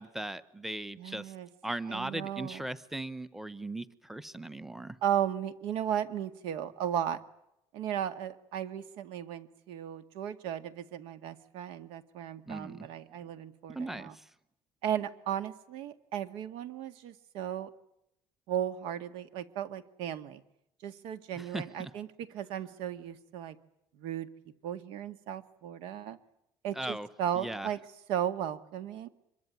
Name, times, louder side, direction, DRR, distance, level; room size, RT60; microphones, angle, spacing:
voice 1, 0.0-1.3 1.6-5.0 12.5-12.9 13.7-14.2 21.4-21.9 26.7-27.1 27.4-27.7, right 2 dB, 5° right, 16 dB, 1.0 m, -38 dB
voice 2, 1.0-1.5 1.9-2.7 5.0-7.2 7.7-14.1 14.8-17.7 18.5-20.4 20.8-23.6 23.9-24.3 24.6-26.2 26.6-27.8 28.1-29.1, right 10 dB, 80° right, 11 dB, 2.0 m, -35 dB
25.5 x 22.5 x 9.4 m, 0.81 s
cardioid pair, 160°, 9 cm